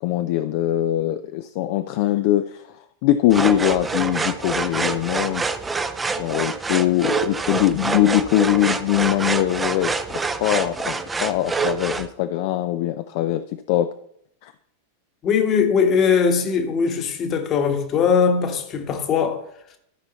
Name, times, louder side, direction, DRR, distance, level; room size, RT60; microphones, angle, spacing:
voice 1, 0.0-5.4 6.2-13.9 14.4-14.5, left 13 dB, 50° left, 0.4 m, -22 dB
sound 1, 3.3-12.1, right 4 dB, 15° right, 0.5 m, -26 dB
voice 2, 15.2-19.4, left 6 dB, 30° left, 1.2 m, -20 dB
12.5 x 5.5 x 4.0 m
figure-of-eight pair, 90°, 0 cm